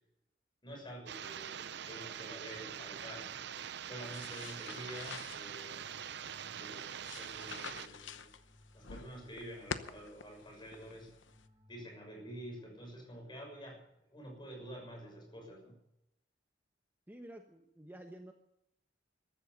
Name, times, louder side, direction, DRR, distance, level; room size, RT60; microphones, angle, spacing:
voice 1, 0.6-3.3 3.9-5.8 6.4-8.3 8.7-11.1 11.7-13.8 14.1-15.7, equal, 25° left, 2 dB, 6.5 m, -48 dB
sound 1, 1.1-7.9, right 9 dB, 65° right, 0.6 m, -44 dB
sound 2, 4.0-11.5, left 5 dB, 80° left, 0.9 m, -48 dB
sound 3, 5.3-12.8, left 1 dB, 30° right, 2.2 m, -65 dB
voice 2, 17.1-18.3, right 1 dB, 10° right, 4 dB, 1.0 m, -50 dB
14.5 x 13.0 x 6.8 m, 0.81 s
head